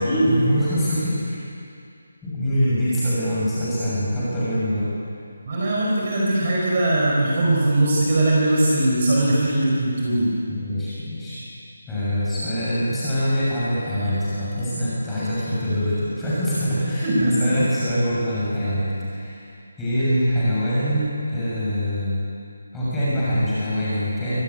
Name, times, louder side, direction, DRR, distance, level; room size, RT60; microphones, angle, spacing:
voice 1, 0.0-1.4 2.2-4.9 10.5-11.4 11.9-19.5 19.8-22.2 22.7-24.4, equal, 5° left, -11 dB, 6.7 m, -24 dB
voice 2, 5.5-10.3 17.0-17.5, right 1 dB, 30° right, -4 dB, 4.5 m, -20 dB
24.5 x 17.5 x 10.0 m, 2.4 s
hypercardioid pair, 180°, 0 cm